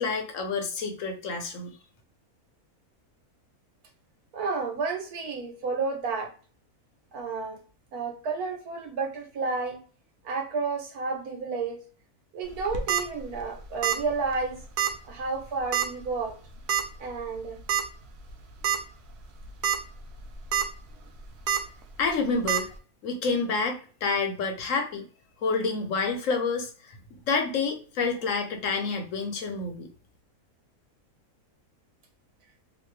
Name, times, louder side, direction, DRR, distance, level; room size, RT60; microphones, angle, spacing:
voice 1, 0.0-1.8 22.0-22.7 23.0-25.0 25.4-27.0 27.3-29.9, left 4 dB, 65° left, 4 dB, 1.0 m, -28 dB
voice 2, 4.3-6.3 7.1-7.6 7.9-9.8 10.2-11.8 12.3-14.6 15.1-16.4 17.0-17.6, right 4 dB, 85° right, 3 dB, 1.4 m, -31 dB
sound 1, 12.6-13.0 13.8-14.1 14.3-14.4 14.8-14.9 15.7-16.0 16.7-16.8 17.7-17.8 18.3-18.4 18.6-18.8 19.4-19.8 20.2-20.6 21.5-21.6 22.5-22.6, right 9 dB, 65° right, 0.7 m, -25 dB
2.9 x 2.5 x 3.1 m, 0.40 s
omnidirectional pair, 1.6 m